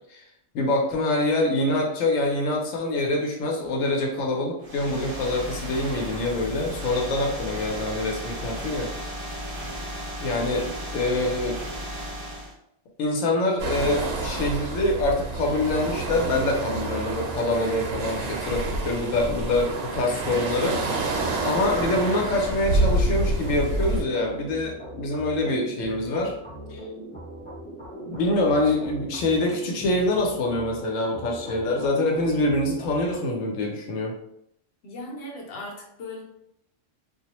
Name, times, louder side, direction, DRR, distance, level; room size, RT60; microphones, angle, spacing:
voice 1, 0.5-8.9 10.2-11.6 13.0-26.3 26.7-26.8 28.0-34.1, left 2 dB, 85° left, 0 dB, 1.0 m, -25 dB
sound 1, 4.6-12.5, equal, 40° right, 0.6 m, -35 dB
sound 2, 13.6-24.0, right 2 dB, 85° right, 1.0 m, -28 dB
sound 3, 16.7-33.2, right 1 dB, 10° left, 0.6 m, -40 dB
voice 2, 34.8-36.2, left 1 dB, 60° left, -1 dB, 0.9 m, -37 dB
2.3 x 2.0 x 2.8 m, 0.76 s
omnidirectional pair, 1.3 m